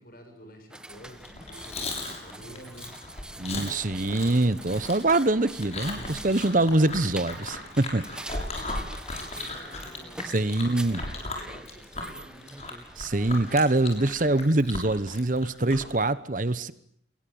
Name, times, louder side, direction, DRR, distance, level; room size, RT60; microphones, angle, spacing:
voice 1, 0.0-2.9 5.9-6.5 8.1-12.6, equal, 50° left, 6 dB, 7.8 m, -49 dB
sound 1, 0.7-14.5, right 1 dB, 5° right, 1.4 m, -45 dB
Chewing mastication, 1.1-16.0, left 2 dB, 35° left, 7.2 m, -37 dB
voice 2, 3.4-8.2 10.3-11.0 13.0-16.7, right 2 dB, 45° right, 15 dB, 1.1 m, -24 dB
27.0 x 22.0 x 8.8 m, 0.66 s
head